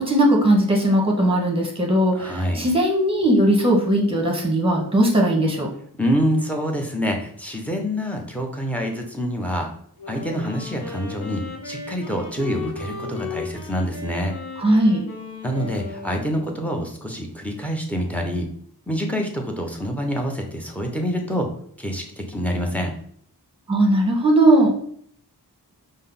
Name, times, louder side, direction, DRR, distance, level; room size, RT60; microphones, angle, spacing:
voice 1, 0.0-5.7 14.6-15.1 23.7-24.8, right 1 dB, 15° right, 1 dB, 1.1 m, -18 dB
voice 2, 2.1-2.7 6.0-9.7 10.1-14.3 15.4-18.5 18.9-21.5 21.8-22.9, equal, 5° left, 3 dB, 0.8 m, -26 dB
Wind instrument woodwind instrument, 10.0-16.7, left 5 dB, 70° left, 1.0 m, -35 dB
5.2 x 2.1 x 3.8 m, 0.62 s
wide cardioid pair, 80°, 40 cm